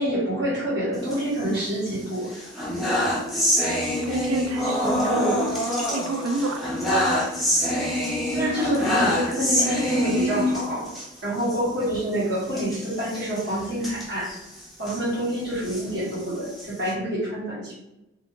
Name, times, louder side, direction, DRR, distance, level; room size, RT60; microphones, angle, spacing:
voice 1, 0.0-2.3 4.8-5.4 8.3-10.9 11.2-14.3 14.8-17.7, right 1 dB, 55° right, -8 dB, 1.3 m, -27 dB
sound 1, 0.9-1.9 2.3-11.1 11.4-11.6 11.8-12.0 12.5-15.0 15.5-16.9, equal, ahead, 0.4 m, -26 dB
voice 2, 4.0-5.6 5.9-6.7, right 2 dB, 85° right, 6 dB, 0.4 m, -30 dB
2.5 x 2.5 x 2.8 m, 0.90 s
head